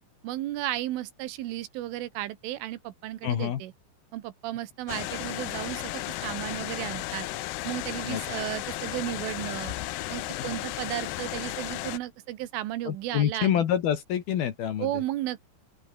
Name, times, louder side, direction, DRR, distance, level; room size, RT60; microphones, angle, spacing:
voice 1, 0.2-3.7 4.1-7.3 7.7-9.8 10.1-13.6 14.8-15.6, right 14 dB, 80° right, 3.8 m, -34 dB
voice 2, 3.2-3.6 8.0-8.2 12.8-14.9, left 10 dB, 60° left, 3.1 m, -27 dB
sound 1, 4.9-12.0, left 16 dB, 75° left, 2.6 m, -34 dB
open air
omnidirectional pair, 5.8 m